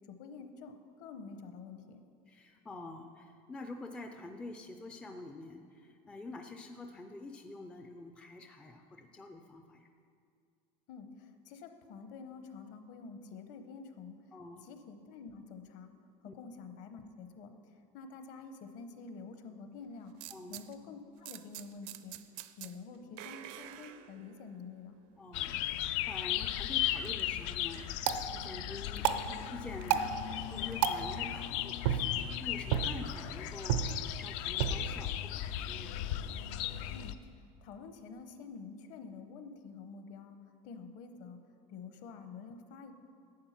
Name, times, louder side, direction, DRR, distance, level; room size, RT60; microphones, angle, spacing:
voice 1, 0.0-2.0 10.9-14.2 14.6-15.9 16.2-20.1 20.5-22.2 22.6-25.0 36.9-41.4 41.7-42.9, left 5 dB, 50° left, 7 dB, 0.9 m, -48 dB
voice 2, 2.3-9.9 14.3-14.7 16.3-16.4 20.3-20.6 25.2-30.1 30.5-36.0, left 2 dB, 5° left, 5 dB, 0.3 m, -47 dB
sound 1, 20.2-20.7 21.3-22.8 23.2-24.6, right 14 dB, 55° right, 0.5 m, -47 dB
sound 2, 25.3-37.1, left 12 dB, 75° left, 0.5 m, -36 dB
sound 3, 26.8-36.9, right 9 dB, 90° right, 0.7 m, -36 dB
11.5 x 8.5 x 5.8 m, 2.3 s
cardioid pair, 180°, 16 cm